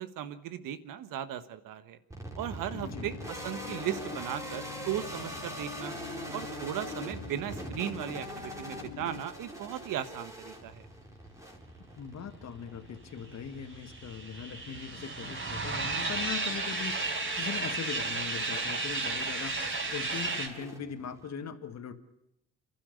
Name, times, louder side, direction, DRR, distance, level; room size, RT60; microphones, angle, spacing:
voice 1, 0.0-2.0 2.3-5.9 6.3-10.9, right 10 dB, 70° right, 12 dB, 1.5 m, -37 dB
sound 1, 2.1-21.3, right 1 dB, 10° right, 3.7 m, -44 dB
sound 2, 2.7-9.2, left 10 dB, 80° left, 2.3 m, -45 dB
voice 2, 2.7-3.1 11.8-17.0 17.4-19.6 19.9-21.9, left 7 dB, 50° left, 7 dB, 1.9 m, -40 dB
sound 3, 13.3-20.5, right 3 dB, 40° right, 4.8 m, -33 dB
29.0 x 12.0 x 8.0 m, 0.78 s
supercardioid pair, 70°, 34 cm